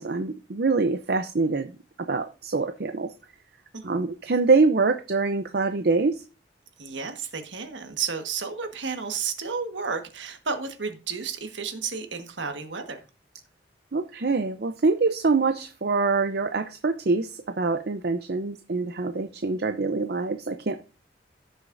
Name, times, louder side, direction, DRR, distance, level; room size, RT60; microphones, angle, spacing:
voice 1, 0.0-1.7 2.1-3.1 3.8-6.2 13.9-20.8, right 3 dB, 55° right, 8 dB, 0.6 m, -25 dB
voice 2, 6.8-13.0, right 5 dB, 80° right, 6 dB, 1.5 m, -32 dB
16.0 x 6.5 x 2.6 m, 0.32 s
head